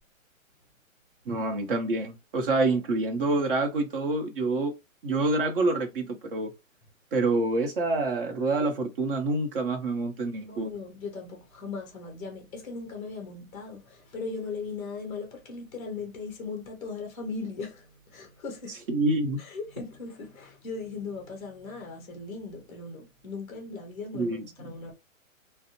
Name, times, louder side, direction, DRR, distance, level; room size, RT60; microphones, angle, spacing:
voice 1, 1.3-4.7 5.0-6.5 7.1-10.7 18.9-19.4 24.1-24.7, right 2 dB, 40° right, 0.7 m, -27 dB
voice 2, 10.5-18.8 19.4-24.9, left 4 dB, 10° left, 0.6 m, -38 dB
2.5 x 2.0 x 2.7 m
hypercardioid pair, 160°, 41 cm